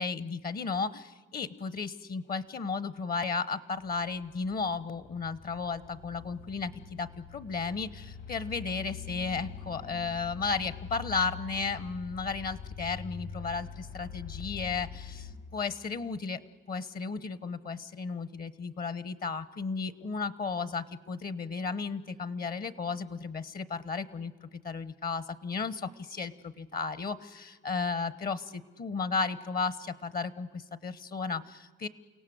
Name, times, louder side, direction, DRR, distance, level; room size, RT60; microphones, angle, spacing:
voice 1, 0.0-16.4 16.7-31.9, left 4 dB, 50° left, 15 dB, 1.1 m, -34 dB
sound 1, 3.8-15.3, left 6 dB, 80° left, 5.9 m, -44 dB
29.0 x 17.5 x 7.9 m, 1.4 s
cardioid pair, 90°, 20 cm